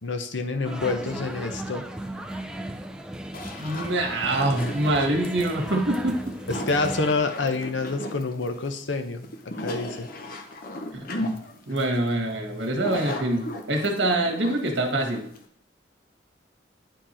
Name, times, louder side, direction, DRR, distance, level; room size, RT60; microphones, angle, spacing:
voice 1, 0.0-1.9 5.0-5.1 6.5-9.3 9.6-10.1, left 3 dB, 80° left, 7 dB, 0.8 m, -27 dB
sound 1, 0.6-7.1, right 1 dB, 5° right, 0.4 m, -36 dB
sound 2, 3.3-15.5, left 1 dB, 50° left, 0.9 m, -36 dB
voice 2, 3.6-6.3 10.9-11.1 11.7-15.3, right 1 dB, 75° right, 2 dB, 1.5 m, -25 dB
9.5 x 4.6 x 4.3 m, 0.65 s
head